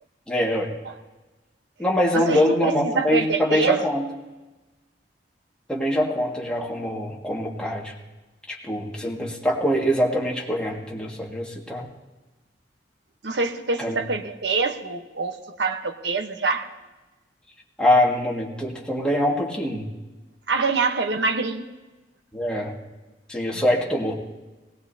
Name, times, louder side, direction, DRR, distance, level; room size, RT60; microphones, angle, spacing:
voice 1, 0.3-0.7 1.8-4.1 5.7-7.9 8.5-11.9 13.8-14.0 17.8-19.9 22.3-22.7 23.3-24.1, left 1 dB, 5° left, -3 dB, 2.0 m, -24 dB
voice 2, 2.1-3.8 13.2-16.7 20.5-21.7 23.5-23.6, right 4 dB, 75° right, 5 dB, 1.1 m, -25 dB
20.0 x 18.0 x 2.8 m, 1.2 s
head